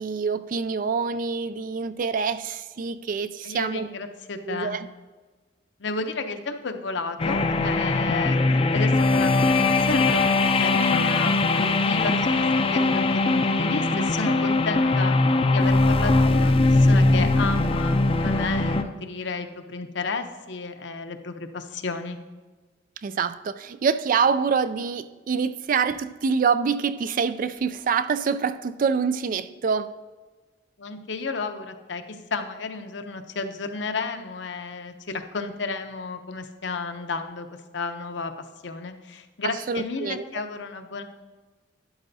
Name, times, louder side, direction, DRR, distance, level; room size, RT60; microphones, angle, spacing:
voice 1, 0.0-3.9 4.5-4.9 23.0-30.0 39.7-40.2, right 5 dB, 45° right, 0.3 m, -26 dB
voice 2, 3.4-4.8 5.8-8.4 8.7-15.1 15.5-22.2 30.8-37.5 37.7-38.3 38.6-41.0, left 4 dB, 65° left, 0.7 m, -32 dB
sound 1, 7.2-18.8, left 2 dB, 30° left, 0.5 m, -21 dB
12.0 x 9.8 x 2.7 m
head